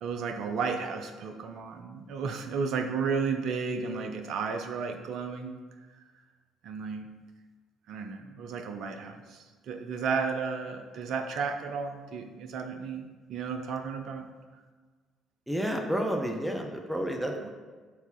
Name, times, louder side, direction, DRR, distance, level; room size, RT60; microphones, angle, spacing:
voice 1, 0.0-5.6 6.0-6.1 6.6-7.1 7.9-14.3 17.4-17.5, right 5 dB, 55° right, 6 dB, 0.6 m, -33 dB
voice 2, 15.5-17.5, equal, 5° right, 2 dB, 0.9 m, -30 dB
4.7 x 4.1 x 5.4 m, 1.4 s
figure-of-eight pair, 50°, 0 cm